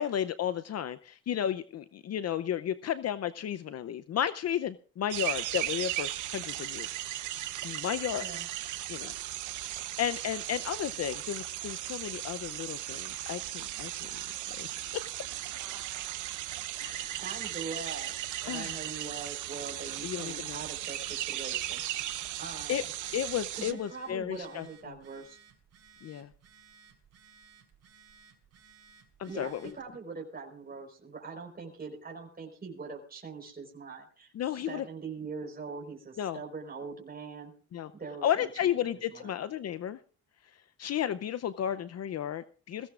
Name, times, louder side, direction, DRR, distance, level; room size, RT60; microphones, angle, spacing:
voice 1, 0.0-6.9 7.6-8.3 8.9-9.1 10.0-14.2 14.6-14.7 14.9-15.0 16.8-17.2 18.5-18.8 20.0-20.6 22.7-22.8 23.1-25.0 26.0-26.3 29.2-29.7 34.3-34.9 36.2-36.4 37.7-37.9 38.2-40.0 40.8-42.9, left 10 dB, 55° left, 14 dB, 0.7 m, -33 dB
sound 1, 5.1-23.7, right 13 dB, 80° right, 1.0 m, -37 dB
voice 2, 17.2-18.1 18.4-21.8 22.4-22.9 23.5-25.4 29.3-37.5 37.9-39.3, right 4 dB, 30° right, 2 dB, 4.4 m, -42 dB
Telephone, 18.7-29.9, right 6 dB, 60° right, 4.8 m, -59 dB
21.5 x 17.0 x 2.5 m, 0.38 s
cardioid pair, 90°, 30 cm